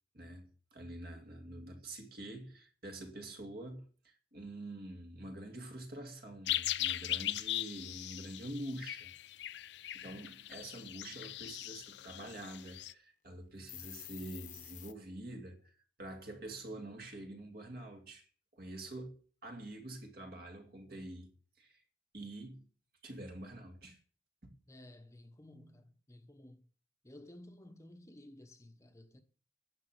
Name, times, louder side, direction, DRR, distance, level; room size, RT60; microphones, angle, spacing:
voice 1, 0.1-9.1 9.9-15.7 16.0-18.3 18.5-21.3 21.6-21.8 22.1-22.7 23.0-24.0 24.4-24.5, right 1 dB, 55° right, 2.5 m, -46 dB
sound 1, 6.5-12.9, left 14 dB, 70° left, 0.5 m, -39 dB
sound 2, 13.7-14.9, left 13 dB, 45° left, 1.1 m, -49 dB
voice 2, 24.7-26.7 27.0-29.2, left 1 dB, 15° left, 1.0 m, -55 dB
10.5 x 7.0 x 9.1 m
head